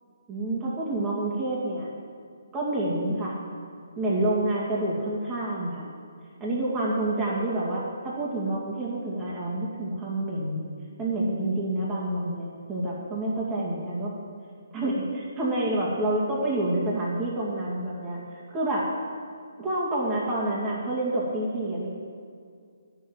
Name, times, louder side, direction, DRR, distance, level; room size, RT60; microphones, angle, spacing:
voice 1, 0.3-1.9 2.5-3.3 4.0-5.9 6.4-10.6 11.0-14.1 14.7-18.9 19.6-21.9, right 1 dB, 20° right, -6 dB, 2.4 m, -28 dB
9.8 x 7.0 x 9.1 m, 2.3 s
figure-of-eight pair, 145°, 0 cm